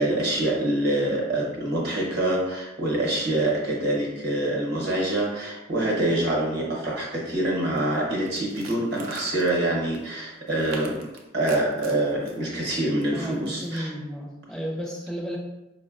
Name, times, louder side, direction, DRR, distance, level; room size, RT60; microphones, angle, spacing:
voice 1, 0.0-11.0 11.3-13.9, right 1 dB, 55° right, -3 dB, 0.8 m, -25 dB
sound 1, 7.8-7.9 8.2-9.6 9.9-10.1 10.5-12.4 13.0-13.8, right 4 dB, 75° right, 0.4 m, -44 dB
voice 2, 13.1-15.4, equal, 5° left, -2 dB, 0.4 m, -33 dB
4.5 x 2.0 x 2.4 m, 0.97 s
head